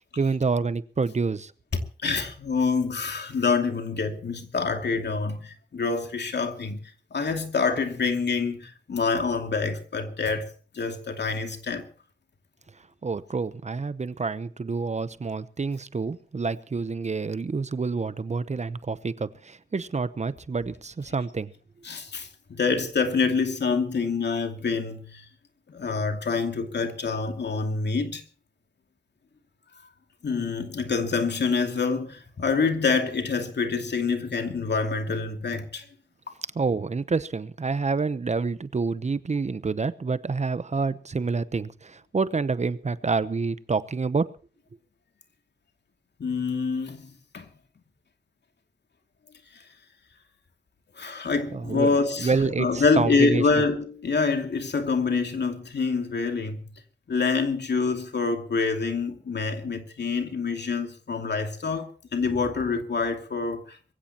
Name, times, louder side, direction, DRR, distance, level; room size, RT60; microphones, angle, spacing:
voice 1, 0.2-1.5 13.0-21.5 36.5-44.3 51.5-53.6, right 4 dB, 40° right, 0.8 m, -28 dB
voice 2, 2.0-6.8 7.1-10.5 10.7-11.9 21.8-25.3 25.7-28.2 30.2-35.9 46.2-47.1 47.3-47.5 51.0-56.6 57.1-63.8, left 4 dB, 75° left, 2.5 m, -26 dB
22.5 x 16.0 x 3.0 m
wide cardioid pair, 125°, 18 cm